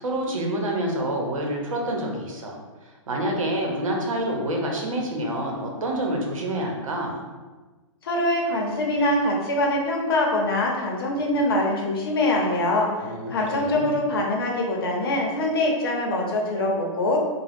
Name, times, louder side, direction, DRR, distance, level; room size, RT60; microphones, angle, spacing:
voice 1, 0.0-2.6 3.1-7.3 13.0-13.9, right 1 dB, 85° right, 0 dB, 0.9 m, -27 dB
voice 2, 8.0-12.9 13.3-17.2, left 1 dB, 45° left, -1 dB, 0.7 m, -23 dB
3.6 x 2.2 x 3.5 m, 1.3 s
hypercardioid pair, 175°, 17 cm